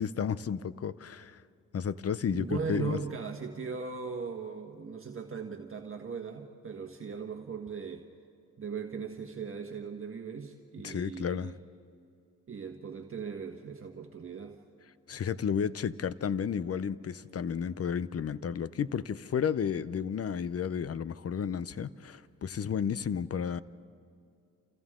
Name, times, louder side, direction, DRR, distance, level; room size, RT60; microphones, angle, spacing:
voice 1, 0.0-1.4 1.7-3.0 10.8-11.5 15.1-23.6, left 7 dB, 45° left, 17 dB, 0.7 m, -32 dB
voice 2, 2.3-8.1 8.6-11.6 12.5-14.6, right 5 dB, 40° right, 3 dB, 1.6 m, -38 dB
29.0 x 28.0 x 3.8 m, 2.5 s
cardioid pair, 65°, 32 cm